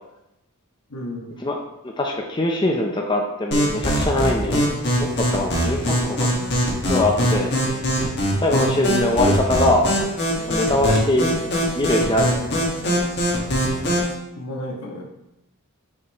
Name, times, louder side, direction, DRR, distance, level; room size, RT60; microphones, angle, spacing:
voice 1, 0.9-1.4 8.7-9.1 10.9-11.2 14.3-15.0, equal, 80° left, 0 dB, 1.3 m, -32 dB
voice 2, 1.8-6.3 6.9-7.5 8.4-9.9 10.5-11.3 11.7-12.4, left 1 dB, 20° left, 1 dB, 0.6 m, -22 dB
sound 1, 3.5-14.1, equal, 50° left, 1.5 m, -22 dB
6.3 x 5.8 x 3.0 m, 0.89 s
head